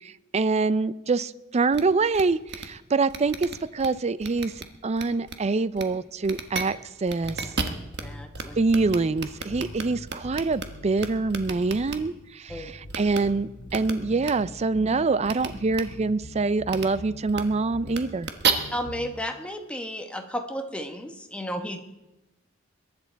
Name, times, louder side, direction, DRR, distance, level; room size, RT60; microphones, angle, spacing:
voice 1, 0.0-4.5 4.8-7.4 8.6-18.3, right 3 dB, 30° right, 16 dB, 0.4 m, -25 dB
sound 1, 1.7-1.8 2.1-2.2 2.5-2.7 3.1-3.9 4.2-4.6 5.0-5.3 5.8-5.9 6.2-6.6 7.1-8.0 8.3-8.4 8.7-10.6 11.0-12.0 12.9-13.2 13.7-13.9 14.2-14.3 15.2-15.5 15.7-15.8 16.7-16.9 17.3-17.4 17.9-18.5, right 6 dB, 55° right, 1.2 m, -30 dB
sound 2, 7.2-9.0 9.5-12.1 12.5-15.1 15.5-18.0 18.5-19.1, left 1 dB, 60° left, 3.5 m, -43 dB
voice 2, 8.0-8.6 12.5-12.7 18.7-21.8, equal, 5° left, 4 dB, 1.2 m, -33 dB
22.0 x 10.5 x 4.6 m, 0.98 s
head